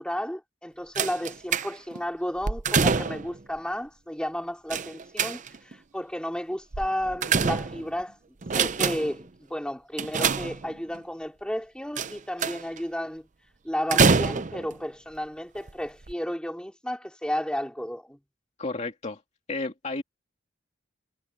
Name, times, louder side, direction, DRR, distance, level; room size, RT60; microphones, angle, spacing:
voice 1, 0.0-8.2 8.5-13.3 13.6-18.2, equal, 5° left, 3.8 m, -33 dB
sound 1, 1.0-2.0 2.4-3.4 4.7-5.7 6.7-8.0 8.4-9.2 10.0-11.0 12.0-12.8 13.9-14.7 15.6-15.7 16.0-16.1, right 5 dB, 40° right, 0.6 m, -25 dB
voice 2, 18.6-19.2 19.5-20.0, left 3 dB, 35° left, 2.3 m, -32 dB
head